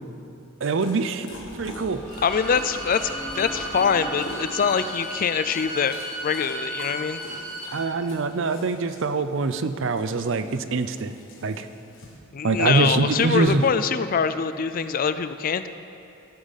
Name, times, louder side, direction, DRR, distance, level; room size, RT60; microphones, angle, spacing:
Dog, 0.6-12.2, left 2 dB, 60° left, 1.7 m, -44 dB
voice 1, 0.6-2.0 7.7-11.1 11.4-11.7 12.4-13.6, right 3 dB, 60° right, 10 dB, 0.5 m, -24 dB
sound 1, 1.3-6.9, left 1 dB, 5° left, 1.9 m, -41 dB
Bowed string instrument, 2.0-7.7, right 1 dB, 40° right, 2.7 m, -35 dB
voice 2, 2.2-3.1 3.3-7.2 12.3-15.7, left 6 dB, 40° left, 11 dB, 0.4 m, -24 dB
16.0 x 10.0 x 4.1 m, 2.7 s
head